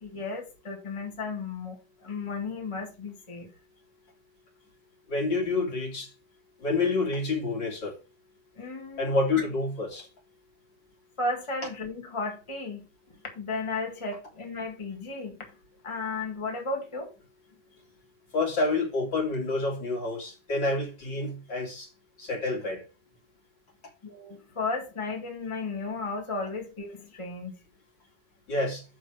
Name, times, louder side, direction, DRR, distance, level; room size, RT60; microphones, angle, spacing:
voice 1, 0.0-3.5 8.6-9.4 11.2-12.9 13.4-15.4 15.8-17.1 24.0-27.6, left 3 dB, 15° left, 1.9 m, -34 dB
voice 2, 5.1-6.1 6.6-7.9 9.0-10.1 18.3-21.9 22.2-22.8 28.5-28.8, left 3 dB, 65° left, 3.9 m, -28 dB
6.8 x 5.6 x 6.4 m
omnidirectional pair, 2.2 m